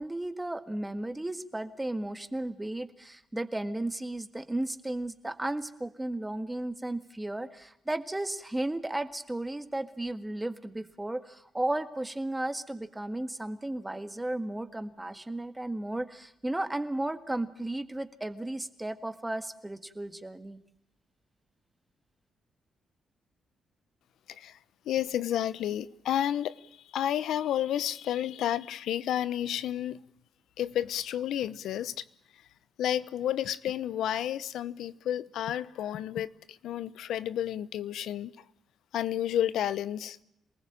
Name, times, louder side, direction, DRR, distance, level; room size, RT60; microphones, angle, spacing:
voice 1, 0.0-20.6, right 1 dB, 10° right, 1.7 m, -34 dB
voice 2, 24.3-24.6 24.9-30.0 30.6-32.0 32.8-38.3 38.9-40.2, left 11 dB, 85° left, 0.9 m, -31 dB
27.5 x 19.5 x 8.8 m
cardioid pair, 130°, 0 cm